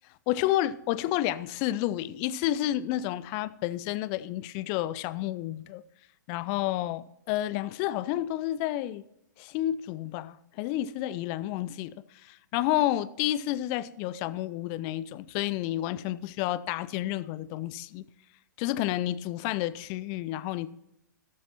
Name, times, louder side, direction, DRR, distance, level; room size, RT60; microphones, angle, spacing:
voice 1, 0.3-5.8 6.3-9.0 9.4-12.0 12.2-18.0 18.6-20.7, left 14 dB, 30° left, 0.5 m, -30 dB
13.5 x 12.5 x 2.9 m
figure-of-eight pair, 110°, 10 cm